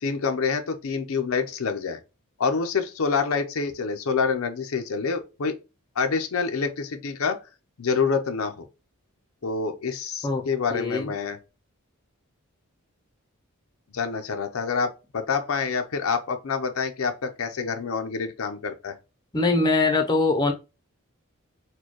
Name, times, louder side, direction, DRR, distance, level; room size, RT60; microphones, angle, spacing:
voice 1, 0.0-2.0 2.4-5.6 6.0-7.4 7.8-8.7 9.4-11.4 13.9-18.9, left 5 dB, 75° left, 0.6 m, -27 dB
voice 2, 10.7-11.1 19.3-20.5, left 3 dB, 20° left, 0.6 m, -22 dB
4.2 x 2.2 x 3.0 m
head